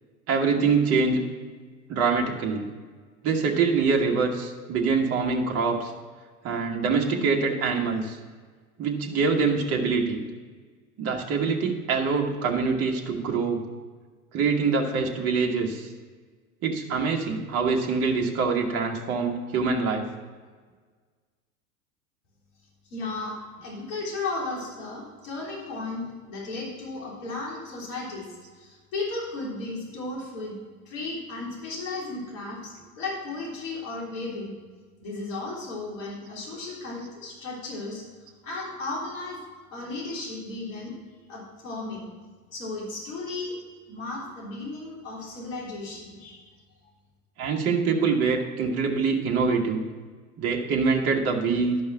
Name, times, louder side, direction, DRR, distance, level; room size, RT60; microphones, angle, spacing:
voice 1, 0.3-1.2 1.9-2.7 3.2-5.9 6.4-8.2 8.8-10.2 11.0-13.6 14.3-15.9 16.6-20.1 47.4-49.8 50.4-51.8, right 4 dB, 30° right, 0 dB, 1.4 m, -24 dB
voice 2, 22.9-28.2 28.5-30.5 30.9-34.5 35.0-38.0 38.4-39.4 39.7-41.0 41.3-42.1 42.5-43.6 43.9-46.4, left 3 dB, 55° left, -4 dB, 3.6 m, -35 dB
12.0 x 5.4 x 6.0 m, 1.5 s
figure-of-eight pair, 85°, 45 cm